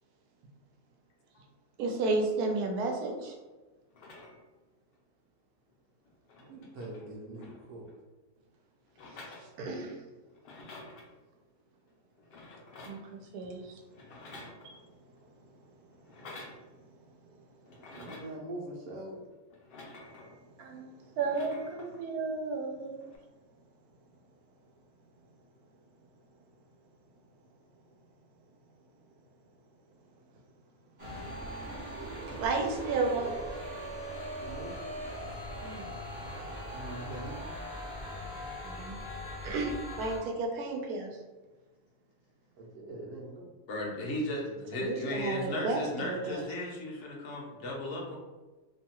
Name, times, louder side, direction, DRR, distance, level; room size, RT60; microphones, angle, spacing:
voice 1, 1.8-3.3 9.1-10.0 12.8-13.8 14.6-14.8 15.7-15.8 16.6-16.7 17.1-17.2 20.6-23.1 31.1-31.3 32.4-33.3 35.6-35.9 38.6-39.0 39.4-41.2 44.7-46.4, right 3 dB, 85° right, 2 dB, 1.1 m, -33 dB
sound 1, 3.9-4.6 5.7-5.8 6.0-8.0 8.9-10.0 10.3-11.1 12.2-13.1 13.9-15.0 16.0-16.6 17.7-18.4 19.5-20.4 21.1-22.0 23.0-23.2, left 2 dB, 75° left, 0.5 m, -50 dB
voice 2, 6.4-7.9 17.9-19.2 34.4-34.7 36.7-37.4 42.6-43.5, right 1 dB, 65° right, -2 dB, 0.9 m, -43 dB
sound 2, 31.0-40.2, equal, 30° right, 0.6 m, -40 dB
voice 3, 43.7-48.2, left 1 dB, 60° left, -2 dB, 0.9 m, -35 dB
2.7 x 2.2 x 2.8 m, 1.2 s
omnidirectional pair, 1.6 m